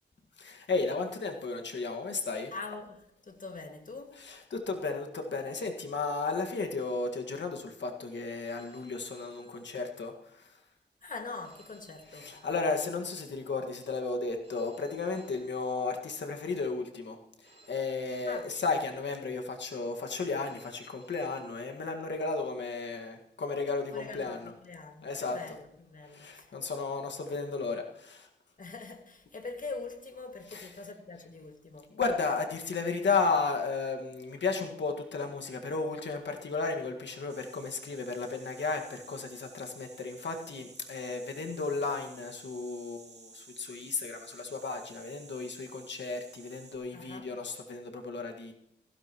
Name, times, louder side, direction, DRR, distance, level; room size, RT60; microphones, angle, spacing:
voice 1, 0.4-2.5 4.2-10.6 12.1-24.5 25.0-25.4 26.0-28.3 30.5-30.7 31.9-48.5, left 4 dB, 75° left, 1.8 m, -34 dB
voice 2, 2.5-4.2 11.0-12.4 18.3-18.5 23.9-26.5 28.6-31.9 46.9-47.3, left 3 dB, 45° left, 2.0 m, -43 dB
Telephone, 8.4-10.3 11.4-13.3 14.4-16.3 17.4-19.3 20.4-22.3, right 2 dB, 35° right, 5.4 m, -61 dB
sound 1, 37.3-46.8, right 4 dB, 65° right, 2.4 m, -54 dB
16.0 x 16.0 x 3.0 m
wide cardioid pair, 100°, 19 cm